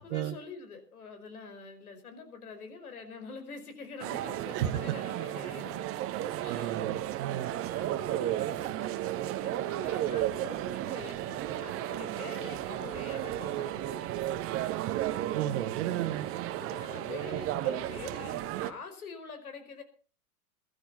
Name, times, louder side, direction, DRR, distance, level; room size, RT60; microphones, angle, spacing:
voice 1, 0.0-5.8 6.4-6.8 7.2-14.7 16.6-19.8, left 5 dB, 70° left, 8 dB, 5.2 m, -46 dB
sound 1, 4.0-18.7, right 13 dB, 30° right, 1.3 m, -33 dB
voice 2, 6.5-7.5 15.3-16.3, right 11 dB, 45° right, 11 dB, 1.8 m, -33 dB
22.5 x 13.0 x 4.2 m, 0.38 s
figure-of-eight pair, 100°, 46 cm